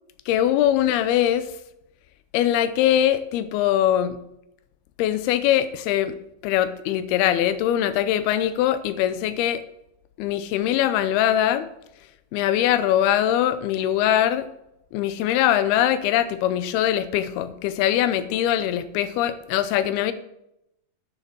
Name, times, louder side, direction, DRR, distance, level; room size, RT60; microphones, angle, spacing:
voice 1, 0.3-1.5 2.3-4.2 5.0-6.2 6.4-9.6 10.2-11.6 12.3-14.5 14.9-20.1, left 11 dB, 90° left, 13 dB, 2.7 m, -22 dB
9.7 x 6.7 x 6.0 m, 0.83 s
omnidirectional pair, 4.4 m